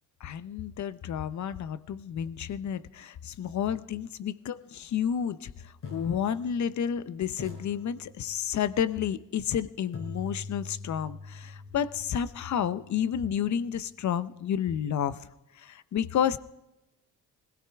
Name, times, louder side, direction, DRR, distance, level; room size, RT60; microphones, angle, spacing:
voice 1, 0.2-5.5 5.9-15.2 15.6-16.4, left 8 dB, 60° left, 16 dB, 0.7 m, -30 dB
sound 1, 4.7-4.9 5.8-7.0 7.4-8.6 9.9-13.9, left 4 dB, 75° left, 5.2 m, -44 dB
21.5 x 16.5 x 3.5 m, 0.95 s
cardioid pair, 105°, 33 cm